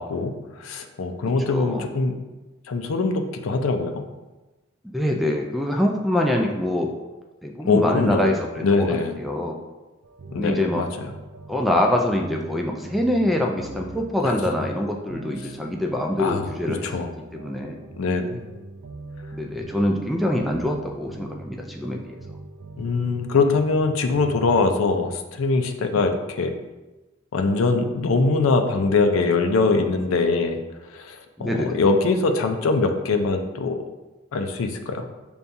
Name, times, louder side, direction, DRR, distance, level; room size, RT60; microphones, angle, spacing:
voice 1, 0.0-2.2 2.7-4.0 7.6-8.3 8.6-9.1 10.3-10.9 14.2-14.3 16.2-17.1 18.0-18.4 22.8-26.5 27.3-33.8 34.3-35.0, left 3 dB, 85° left, 6 dB, 0.4 m, -23 dB
voice 2, 1.5-1.9 4.8-6.9 7.4-8.9 9.2-9.6 10.4-10.8 11.5-16.8 17.3-17.8 19.3-22.2 31.4-31.7, left 1 dB, ahead, 1 dB, 0.3 m, -24 dB
sound 1, 10.0-25.2, right 2 dB, 75° right, 0.4 m, -41 dB
6.8 x 2.3 x 2.6 m, 1.1 s
head